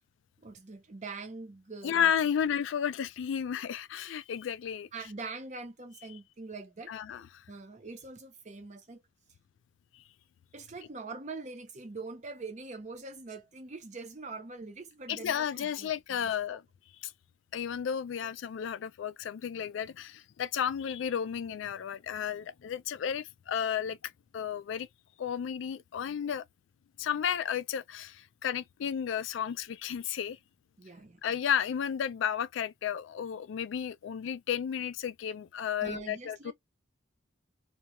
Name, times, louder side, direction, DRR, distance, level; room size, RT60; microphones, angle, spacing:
voice 1, 0.4-2.1 4.9-6.9 7.5-9.0 10.5-16.6 18.2-18.3 30.8-31.2 35.8-36.5, right 3 dB, 35° right, 0.6 m, -43 dB
voice 2, 1.8-4.9 6.9-7.4 9.9-10.0 15.1-16.6 17.0-17.1 17.5-24.9 25.2-26.4 27.0-30.4 31.2-36.5, left 8 dB, 75° left, 0.3 m, -33 dB
2.4 x 2.1 x 2.9 m
head